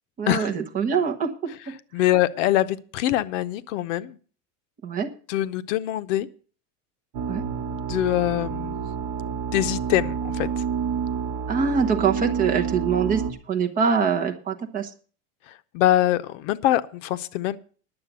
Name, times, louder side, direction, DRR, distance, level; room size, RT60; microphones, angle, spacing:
voice 1, 0.2-1.5 4.8-5.1 7.2-7.4 11.5-13.2 13.5-14.9, right 6 dB, 20° right, 5 dB, 1.1 m, -24 dB
voice 2, 1.9-4.2 5.3-6.3 7.9-8.8 9.5-10.6 15.7-17.6, left 14 dB, 70° left, 14 dB, 0.8 m, -23 dB
sound 1, 7.1-13.3, right 7 dB, 50° right, 1.5 m, -29 dB
11.0 x 7.6 x 8.0 m, 0.41 s
cardioid pair, 175°, 38 cm